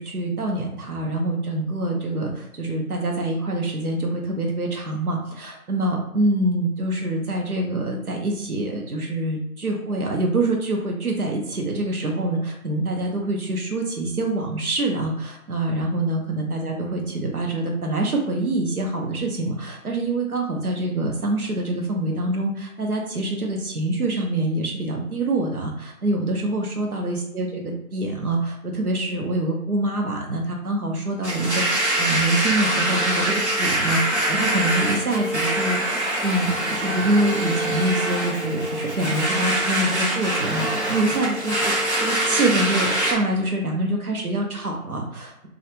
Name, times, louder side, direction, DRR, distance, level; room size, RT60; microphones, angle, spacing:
voice 1, 0.0-41.7 42.0-45.5, right 2 dB, 80° right, 1 dB, 0.8 m, -25 dB
Domestic sounds home sounds, 31.2-43.1, right 1 dB, 50° right, 0.8 m, -24 dB
2.3 x 2.1 x 3.0 m, 0.83 s
figure-of-eight pair, 170°, 43 cm